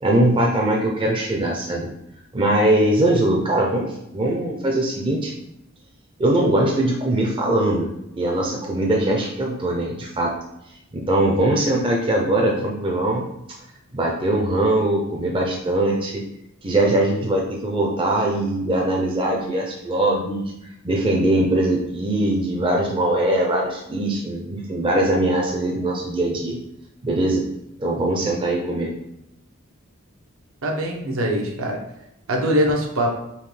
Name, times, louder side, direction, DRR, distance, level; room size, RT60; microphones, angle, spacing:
voice 1, 0.0-1.9 2.3-5.3 6.2-7.9 8.2-10.3 10.9-13.3 13.9-16.2 16.6-20.5 20.8-26.6 27.0-27.4 27.8-28.9, right 1 dB, 25° right, -1 dB, 0.5 m, -21 dB
voice 2, 30.6-31.8 32.3-33.2, equal, 75° right, 0 dB, 0.9 m, -22 dB
5.5 x 2.2 x 3.2 m, 0.82 s
head